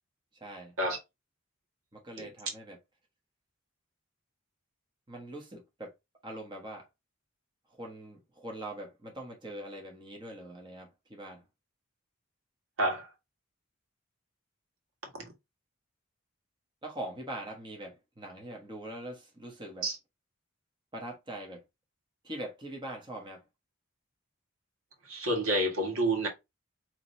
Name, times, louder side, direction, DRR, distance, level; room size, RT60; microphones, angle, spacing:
voice 1, 0.4-0.7 1.9-2.8 5.1-5.9 6.2-6.9 7.7-11.4 16.8-19.9 20.9-21.6 22.2-23.4, right 1 dB, 20° right, 1.2 m, -42 dB
voice 2, 25.1-26.3, right 1 dB, 80° right, 1.7 m, -29 dB
5.1 x 3.1 x 2.7 m
head